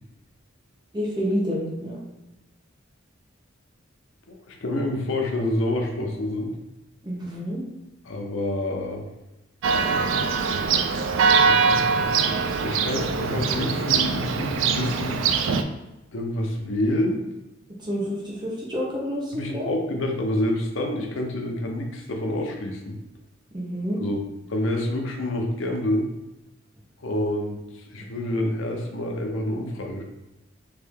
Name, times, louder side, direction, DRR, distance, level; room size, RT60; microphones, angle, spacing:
voice 1, 0.9-2.0 7.0-7.6 17.8-19.7 23.5-24.0, equal, 25° right, -4 dB, 0.9 m, -28 dB
voice 2, 4.3-6.5 8.0-9.0 11.4-15.2 16.1-17.2 19.3-23.0 24.0-24.2 24.5-26.1 27.0-30.0, left 1 dB, 75° left, 2 dB, 0.7 m, -28 dB
Church bell, 9.6-15.6, right 5 dB, 75° right, 0.3 m, -22 dB
3.3 x 2.7 x 3.5 m, 0.98 s
head